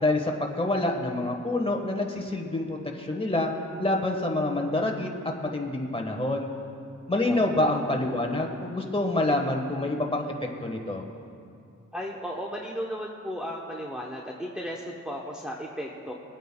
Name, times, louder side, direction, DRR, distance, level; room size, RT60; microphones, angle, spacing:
voice 1, 0.0-3.5 3.8-5.1 5.4-6.5 7.1-10.3 10.6-11.0, left 2 dB, 20° left, 1 dB, 1.3 m, -27 dB
voice 2, 7.2-7.8 11.9-16.1, equal, 5° right, -3 dB, 0.9 m, -35 dB
24.0 x 9.1 x 2.3 m, 2.4 s
wide cardioid pair, 100°, 31 cm